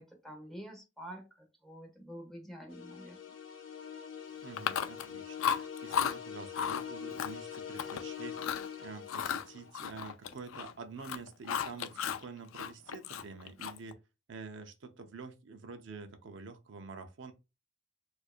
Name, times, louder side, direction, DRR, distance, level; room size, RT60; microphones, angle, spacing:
voice 1, 0.0-3.2, equal, ahead, 0.9 m, -48 dB
sound 1, 2.7-9.7, left 8 dB, 70° left, 0.8 m, -44 dB
voice 2, 4.4-8.4 8.8-14.0 14.3-17.3, right 4 dB, 65° right, 0.5 m, -47 dB
Chewing mastication, 4.6-5.1 5.4-6.1 6.5-6.8 7.2-8.0 8.3-8.7 9.1-10.7 11.0-12.2 12.5-13.9, left 8 dB, 90° left, 0.4 m, -34 dB
4.3 x 2.5 x 2.4 m
head